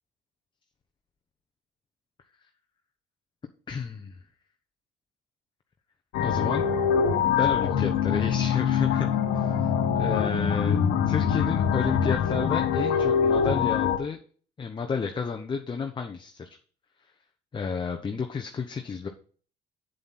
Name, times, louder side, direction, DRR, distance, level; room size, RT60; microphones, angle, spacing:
voice 1, 3.7-4.1 6.2-6.7 7.4-10.8 11.1-14.2 14.6-16.5 17.5-19.1, left 5 dB, 30° left, 5 dB, 1.0 m, -31 dB
sound 1, 6.1-14.0, left 7 dB, 85° left, 1.3 m, -24 dB
8.0 x 7.6 x 4.2 m, 0.42 s
cardioid pair, 110°, 17 cm